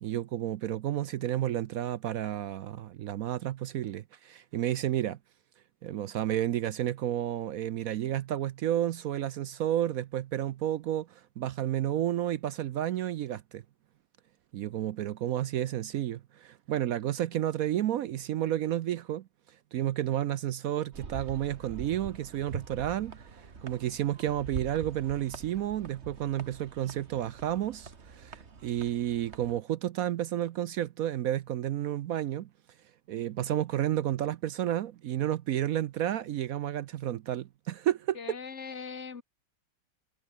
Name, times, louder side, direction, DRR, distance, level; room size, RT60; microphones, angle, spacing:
voice 1, 0.0-5.2 5.8-13.6 14.5-19.2 19.7-32.5 33.1-38.2, right 12 dB, 65° right, 0.9 m, -31 dB
sound 1, 20.9-29.6, right 5 dB, 40° right, 1.9 m, -44 dB
voice 2, 38.2-39.2, left 5 dB, 40° left, 1.9 m, -40 dB
omnidirectional pair, 1.9 m